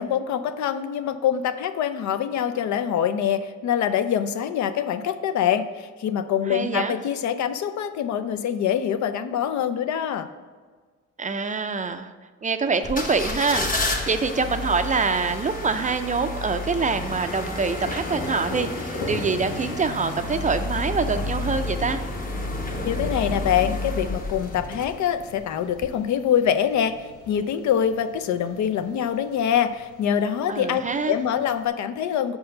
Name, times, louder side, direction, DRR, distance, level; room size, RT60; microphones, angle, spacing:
voice 1, 0.0-10.3 22.8-32.4, left 9 dB, 70° left, 11 dB, 0.5 m, -24 dB
voice 2, 6.5-6.9 11.2-12.1 12.4-22.0 30.5-31.1, right 4 dB, 25° right, 9 dB, 0.4 m, -25 dB
sound 1, 12.8-25.3 25.8-25.9, left 2 dB, 30° left, 0.9 m, -31 dB
Thunder, 13.7-31.7, left 2 dB, 85° left, 1.2 m, -40 dB
5.5 x 4.6 x 6.4 m, 1.5 s
cardioid pair, 90°, 30 cm